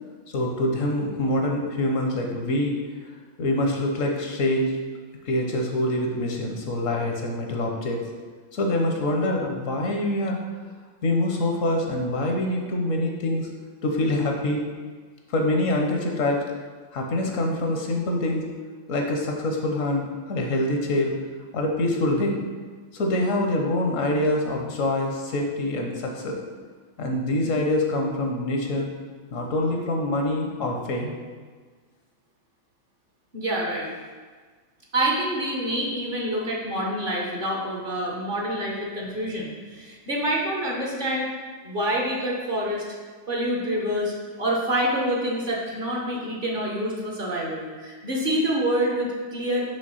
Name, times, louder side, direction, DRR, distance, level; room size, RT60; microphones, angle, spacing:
voice 1, 0.3-2.7 3.4-4.7 5.3-8.0 8.5-10.4 11.0-13.5 13.8-14.6 15.3-16.4 16.9-18.4 18.9-21.1 21.5-22.4 22.9-26.4 27.0-28.9 29.3-31.2, left 1 dB, 75° left, 1 dB, 1.2 m, -25 dB
voice 2, 33.3-33.9 34.9-41.3 41.6-42.8 43.3-49.6, right 1 dB, 45° right, -2 dB, 1.0 m, -27 dB
5.3 x 3.4 x 5.6 m, 1.5 s
omnidirectional pair, 1.4 m